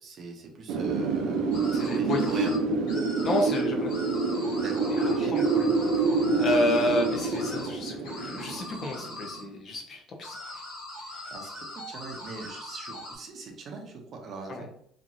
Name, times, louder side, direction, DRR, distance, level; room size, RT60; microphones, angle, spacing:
voice 1, 0.0-2.6 4.6-5.4 11.0-14.7, right 3 dB, 40° right, 2 dB, 0.6 m, -41 dB
Wind, 0.7-9.4, right 3 dB, 85° right, 0.6 m, -27 dB
sound 1, 1.5-2.6 2.9-3.6 3.9-7.7 8.0-9.4 10.2-13.2, left 1 dB, 90° left, 1.2 m, -41 dB
voice 2, 1.7-2.5 3.2-3.9 4.9-6.0 6.3-10.6 11.1-11.3 14.5-14.6, left 1 dB, 40° left, 1 dB, 0.5 m, -31 dB
2.9 x 2.5 x 2.5 m, 0.70 s
cardioid pair, 145°, 0 cm